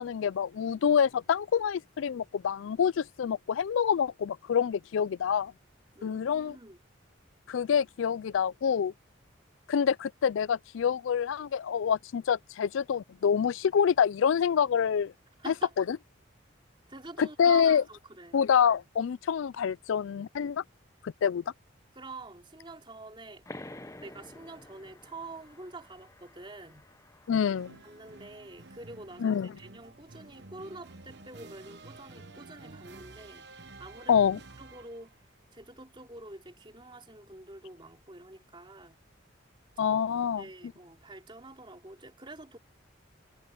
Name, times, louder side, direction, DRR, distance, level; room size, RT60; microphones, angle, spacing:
voice 1, 0.0-5.5 6.0-6.5 7.5-8.9 9.7-15.1 15.5-16.0 17.2-17.8 18.3-20.6 21.0-21.4 27.3-27.8 29.2-29.5 34.1-34.4 39.8-40.4, left 7 dB, 75° left, 0.4 m, -26 dB
voice 2, 6.0-6.8 15.4-15.7 16.9-18.4 21.9-23.5 24.0-26.9 27.8-33.5 33.8-34.3 34.6-35.1 35.5-39.0 39.8-40.0 40.4-42.6, right 2 dB, 25° right, 3.7 m, -47 dB
sound 1, 23.5-28.7, left 1 dB, 15° left, 0.9 m, -50 dB
sound 2, 27.3-35.2, right 3 dB, 55° right, 1.1 m, -51 dB
head